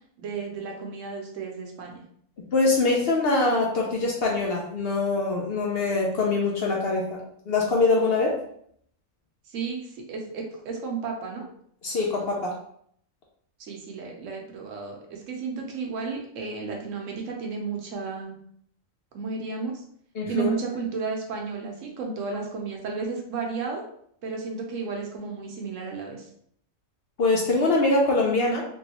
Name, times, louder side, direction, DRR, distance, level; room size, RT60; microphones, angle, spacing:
voice 1, 0.2-2.0 9.5-11.4 13.6-18.4 19.1-19.8 20.3-23.8 24.2-26.3, right 5 dB, 70° right, 1 dB, 1.0 m, -33 dB
voice 2, 2.5-8.4 11.8-12.5 20.2-20.5 27.2-28.7, left 3 dB, 60° left, -1 dB, 0.7 m, -23 dB
3.1 x 2.7 x 2.8 m, 0.65 s
omnidirectional pair, 1.4 m